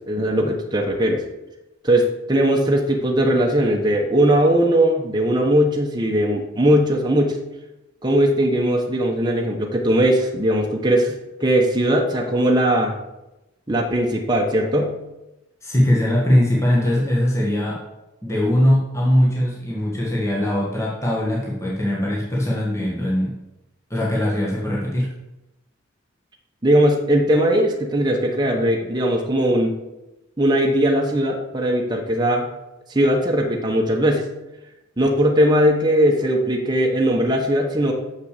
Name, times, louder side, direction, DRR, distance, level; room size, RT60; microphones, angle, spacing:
voice 1, 0.1-1.2 1.8-7.4 8.0-13.0 13.7-14.9 26.6-29.7 30.4-32.4 32.9-34.3 35.0-37.9, right 1 dB, 20° right, 0 dB, 1.0 m, -19 dB
voice 2, 15.6-17.8 18.2-23.3 23.9-25.1, left 1 dB, 15° left, -5 dB, 1.5 m, -20 dB
6.7 x 6.5 x 6.6 m, 0.98 s
head